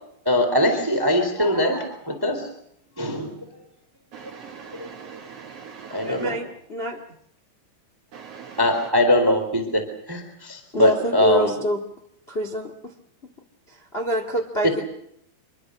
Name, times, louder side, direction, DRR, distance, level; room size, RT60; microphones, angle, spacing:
voice 1, 0.2-2.5 3.0-3.3 4.4-4.5 4.8-4.9 5.9-6.4 8.6-9.8 10.1-11.5, left 1 dB, 5° right, 2.9 m, -21 dB
voice 2, 4.1-6.2 8.1-8.9, right 6 dB, 80° right, 1.4 m, -41 dB
voice 3, 6.0-7.0 10.7-11.8 12.3-12.9 13.7-14.8, equal, 90° left, 0.5 m, -26 dB
26.5 x 23.0 x 6.6 m
omnidirectional pair, 4.8 m